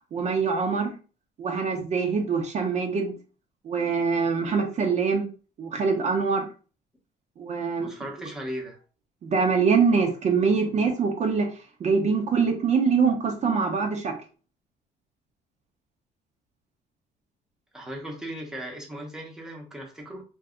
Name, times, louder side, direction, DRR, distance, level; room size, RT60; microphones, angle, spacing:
voice 1, 0.1-0.9 1.4-3.2 3.6-5.3 5.6-6.4 7.4-7.9 8.2-8.3 9.2-11.5 11.8-14.1, right 5 dB, 40° right, 0.6 m, -24 dB
voice 2, 7.8-8.8 17.7-20.2, equal, 5° right, 0.8 m, -37 dB
2.6 x 2.3 x 3.7 m
cardioid pair, 110°, 17 cm